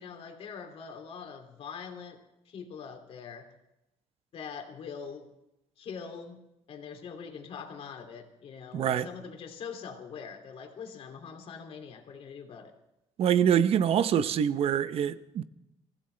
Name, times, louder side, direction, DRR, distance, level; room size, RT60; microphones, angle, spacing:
voice 1, 0.0-2.2 2.5-3.5 4.3-5.3 5.8-6.4 6.7-12.7, left 6 dB, 55° left, 2.6 m, -43 dB
voice 2, 8.7-9.1 13.2-15.4, right 9 dB, 55° right, 0.8 m, -25 dB
24.5 x 15.5 x 3.3 m
cardioid pair, 140°, 12 cm